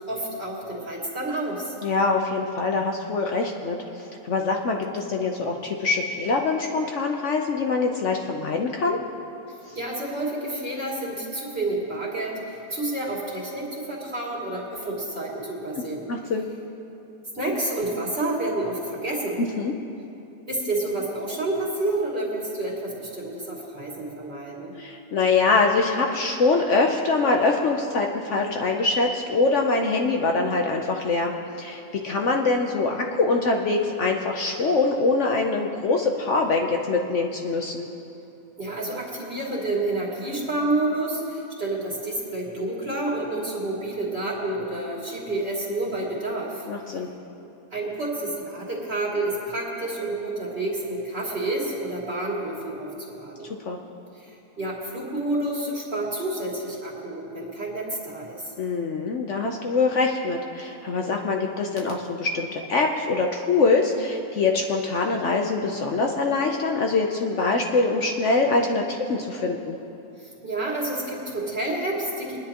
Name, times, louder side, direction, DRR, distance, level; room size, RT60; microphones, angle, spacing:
voice 1, 0.1-1.7 9.7-16.0 17.3-19.4 20.5-24.7 38.6-46.7 47.7-53.5 54.1-58.5 70.2-72.4, right 2 dB, 40° right, -5 dB, 2.8 m, -29 dB
voice 2, 1.8-3.8 4.2-9.0 9.7-9.8 16.1-16.5 19.4-19.7 24.8-37.9 46.7-47.1 53.7-53.8 58.6-69.8, left 3 dB, 60° left, 2 dB, 1.0 m, -24 dB
23.5 x 10.5 x 2.9 m, 2.9 s
omnidirectional pair, 1.5 m